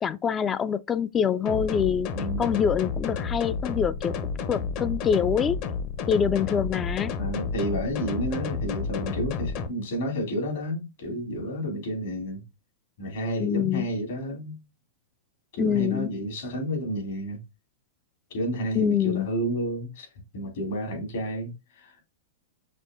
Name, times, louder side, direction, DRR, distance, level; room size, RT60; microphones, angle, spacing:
voice 1, 0.0-2.1 2.4-4.2 4.5-5.6 6.1-7.1 13.4-13.9 15.6-16.1 18.8-19.3, left 8 dB, 25° left, 0.3 m, -25 dB
sound 1, 1.5-9.7, left 5 dB, 45° left, 0.8 m, -31 dB
voice 2, 2.1-2.5 7.2-12.4 13.0-14.6 15.5-17.4 18.3-20.1 20.3-22.0, equal, 70° left, 2.9 m, -31 dB
5.3 x 3.6 x 2.5 m
hypercardioid pair, 120°, 0 cm